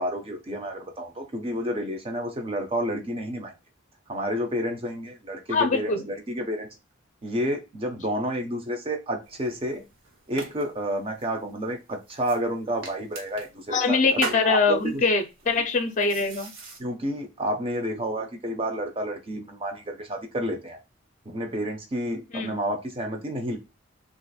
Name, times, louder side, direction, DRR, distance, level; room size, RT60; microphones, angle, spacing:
voice 1, 0.0-3.5 4.1-6.7 7.2-9.8 10.3-15.0 16.8-20.8 21.3-23.6, equal, 30° right, 4 dB, 0.6 m, -30 dB
voice 2, 5.5-6.1 13.7-16.5 22.3-22.6, left 4 dB, 40° left, 7 dB, 0.5 m, -23 dB
sound 1, 9.2-16.8, right 3 dB, 70° right, 0.9 m, -41 dB
2.5 x 2.5 x 4.0 m, 0.28 s
head